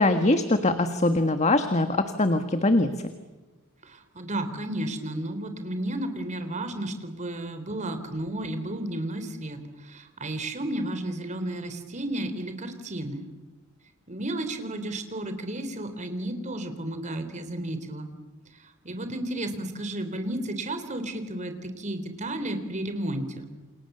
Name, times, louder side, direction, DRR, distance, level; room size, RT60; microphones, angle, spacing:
voice 1, 0.0-2.9, left 2 dB, 35° left, 8 dB, 1.6 m, -22 dB
voice 2, 3.8-13.3 14.1-18.1 18.8-23.5, right 1 dB, 35° right, 8 dB, 3.7 m, -33 dB
29.0 x 28.0 x 6.9 m, 1.2 s
head